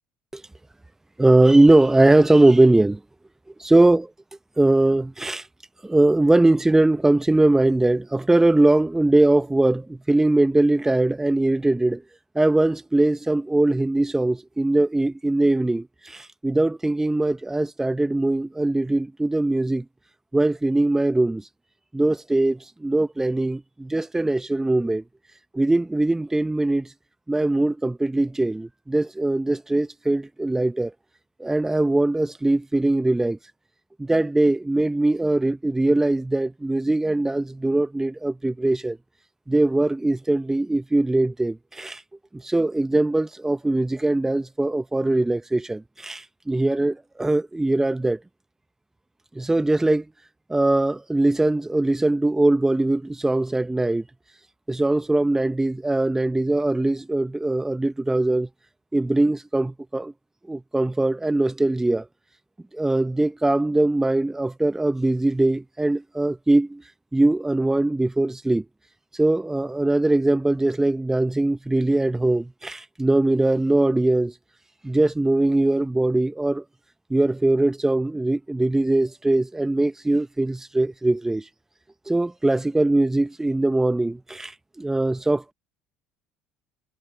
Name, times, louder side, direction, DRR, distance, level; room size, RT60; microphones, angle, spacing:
voice 1, 1.2-3.0 3.6-4.1 4.6-5.5 5.8-12.0 12.3-19.8 20.3-21.4 21.9-25.0 25.5-26.9 27.3-30.9 31.4-33.4 34.0-39.0 39.5-42.0 42.3-48.2 49.3-50.0 50.5-54.0 54.7-58.5 58.9-60.1 60.5-62.1 62.7-66.8 67.1-68.6 69.2-74.3 74.8-76.6 77.1-81.5 82.1-85.5, right 2 dB, 10° right, 1.1 m, -21 dB
hypercardioid pair, 65°, 4 cm